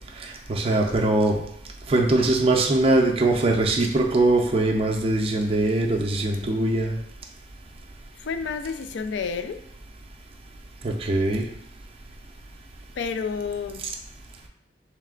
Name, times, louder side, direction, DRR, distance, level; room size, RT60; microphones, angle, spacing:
voice 1, 0.2-1.4 1.9-7.0 10.8-11.5, right 2 dB, 35° right, 0 dB, 0.5 m, -22 dB
voice 2, 8.2-9.6 13.0-13.8, left 5 dB, 85° left, 9 dB, 0.3 m, -30 dB
3.3 x 3.2 x 3.7 m, 0.74 s
head